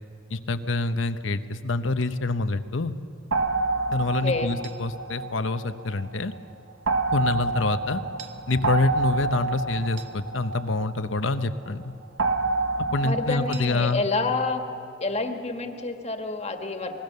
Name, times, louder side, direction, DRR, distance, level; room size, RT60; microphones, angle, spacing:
voice 1, 0.3-2.9 3.9-6.3 7.1-8.0 8.5-11.9 12.9-14.1, left 3 dB, 90° left, 10 dB, 0.9 m, -26 dB
sound 1, 3.3-6.1 6.9-11.4 12.2-14.0, right 3 dB, 90° right, 1.3 m, -28 dB
voice 2, 4.2-4.6 13.0-14.6 15.0-17.0, left 3 dB, 35° left, 5 dB, 1.7 m, -28 dB
26.5 x 20.5 x 6.8 m, 2.7 s
head